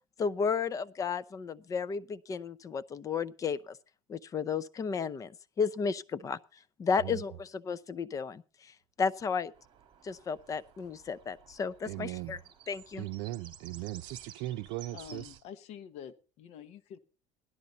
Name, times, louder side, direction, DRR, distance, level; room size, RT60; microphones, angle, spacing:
voice 1, 0.2-3.8 4.1-5.3 5.6-6.4 6.8-8.7 9.0-9.5 10.0-12.4 12.7-13.1, left 5 dB, 25° left, 0.6 m, -33 dB
sound 1, 9.5-15.4, right 8 dB, 40° right, 2.7 m, -54 dB
voice 2, 11.8-12.4 13.0-15.3, right 16 dB, 75° right, 0.6 m, -38 dB
voice 3, 14.9-17.0, left 9 dB, 55° left, 1.1 m, -47 dB
16.5 x 12.0 x 4.0 m
cardioid pair, 145°, 13 cm